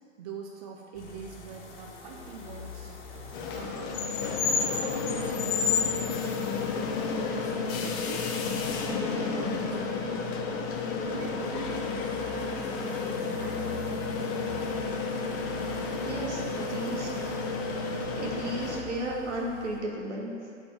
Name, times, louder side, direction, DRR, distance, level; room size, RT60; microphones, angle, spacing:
voice 1, 0.2-6.5 7.1-8.5 8.8-14.5 16.3-16.5, right 5 dB, 30° right, 1 dB, 0.5 m, -44 dB
sound 1, 0.9-19.8, left 3 dB, 45° left, 1.4 m, -46 dB
sound 2, 3.3-18.8, left 4 dB, 20° left, 0.4 m, -31 dB
voice 2, 15.9-17.3 18.2-20.3, right 1 dB, 60° right, -2 dB, 1.6 m, -34 dB
6.8 x 4.8 x 6.5 m, 2.4 s
figure-of-eight pair, 105°, 38 cm